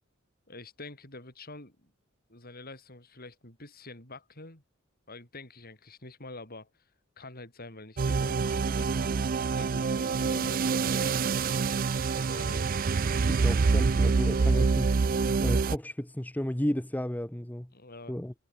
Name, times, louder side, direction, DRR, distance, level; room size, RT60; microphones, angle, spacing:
voice 1, 0.5-1.9 2.3-4.6 5.1-6.9 7.2-9.3 9.5-11.3 12.1-12.7 17.7-18.2, left 2 dB, 45° left, 7.7 m, -46 dB
sound 1, 8.0-15.8, right 4 dB, 45° right, 0.4 m, -26 dB
voice 2, 13.2-15.0 15.4-17.7 18.1-18.3, equal, 10° left, 0.9 m, -32 dB
head